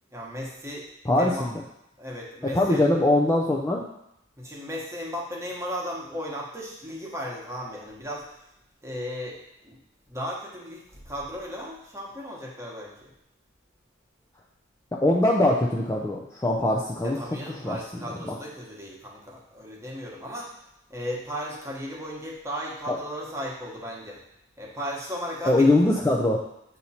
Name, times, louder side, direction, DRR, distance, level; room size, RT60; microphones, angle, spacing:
voice 1, 0.1-0.9 1.1-1.5 2.0-2.9 4.4-8.3 8.8-9.8 10.1-13.1 17.0-20.5 20.9-24.2 24.6-25.7, equal, 15° right, -3 dB, 1.1 m, -35 dB
voice 2, 1.1-1.5 2.5-3.8 15.0-17.4 17.6-17.8 18.2-18.3 22.9-23.0 25.4-26.4, left 1 dB, 15° left, -2 dB, 0.4 m, -22 dB
7.9 x 2.8 x 4.2 m, 0.81 s
head